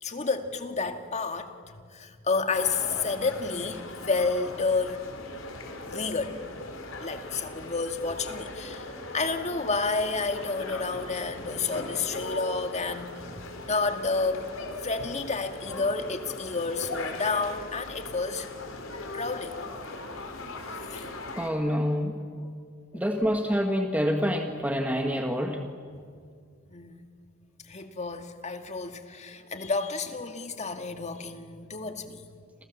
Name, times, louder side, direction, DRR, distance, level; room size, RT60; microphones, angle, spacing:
voice 1, 0.0-5.0 5.9-6.6 7.0-14.5 14.8-18.5 19.1-19.6 20.9-21.1 22.4-22.5 22.9-23.0 25.9-26.1 26.7-27.1 27.6-32.3, left 4 dB, 35° left, 7 dB, 2.0 m, -30 dB
sound 1, 2.5-21.5, left 2 dB, 75° left, 4.0 m, -39 dB
voice 2, 21.4-22.2 22.9-25.6, equal, 5° right, 4 dB, 1.7 m, -27 dB
29.5 x 28.0 x 7.3 m, 2.1 s
head